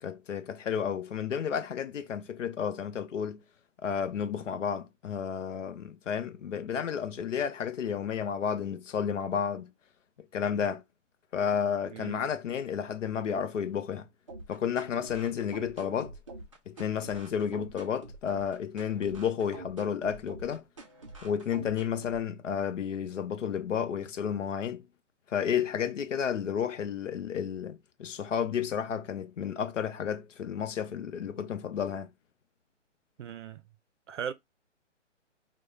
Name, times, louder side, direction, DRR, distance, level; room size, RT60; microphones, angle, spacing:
voice 1, 0.0-3.4 3.8-9.7 10.3-10.8 11.3-14.1 14.5-16.1 16.7-20.6 21.2-24.9 25.3-32.1, left 8 dB, 75° left, 0.6 m, -32 dB
voice 2, 11.9-12.2 33.2-33.6 34.1-34.3, right 8 dB, 75° right, 0.5 m, -38 dB
sound 1, 14.3-22.3, right 2 dB, 30° right, 0.4 m, -46 dB
2.3 x 2.2 x 3.0 m
hypercardioid pair, 150°, 37 cm